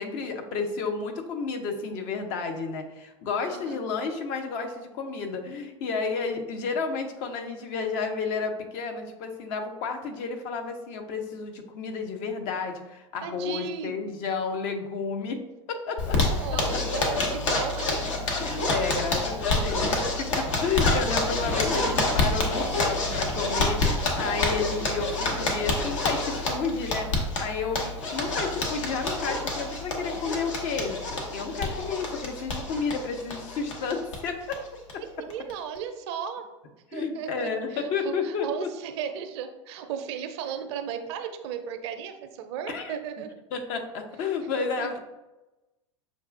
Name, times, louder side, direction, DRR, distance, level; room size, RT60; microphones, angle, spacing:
voice 1, 0.0-15.4 15.7-16.4 18.3-31.0 31.3-34.6 34.9-35.0 36.9-38.7 42.7-43.0 43.5-45.0, left 5 dB, 50° left, 4 dB, 0.7 m, -31 dB
voice 2, 13.2-14.0 16.4-18.0 35.0-36.5 36.9-43.4 44.6-45.0, right 8 dB, 55° right, 7 dB, 0.5 m, -36 dB
Zipper (clothing), 16.0-34.2 34.5-34.6 34.9-35.0 35.3-35.8, left 2 dB, 70° left, 1.0 m, -28 dB
6.6 x 2.4 x 2.5 m, 1.0 s
figure-of-eight pair, 85°, 17 cm